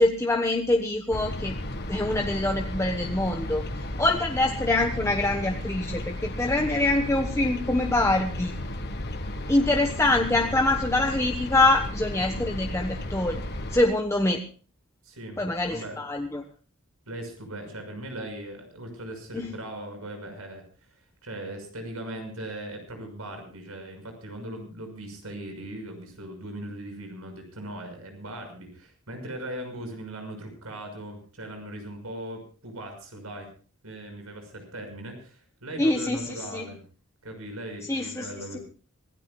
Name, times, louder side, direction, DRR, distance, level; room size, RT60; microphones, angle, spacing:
voice 1, 0.0-1.6 1.9-3.6 4.0-8.5 9.5-13.4 13.7-14.4 15.4-16.4 19.3-19.5 35.8-36.7 37.9-38.3, left 2 dB, 15° left, 2 dB, 1.1 m, -24 dB
sound 1, 1.1-13.8, left 1 dB, 50° left, 1.6 m, -34 dB
voice 2, 15.0-16.0 17.1-20.9 21.2-33.5 33.8-36.8 37.2-38.6, right 1 dB, 85° right, 5 dB, 6.2 m, -39 dB
26.0 x 16.5 x 2.4 m, 0.39 s
head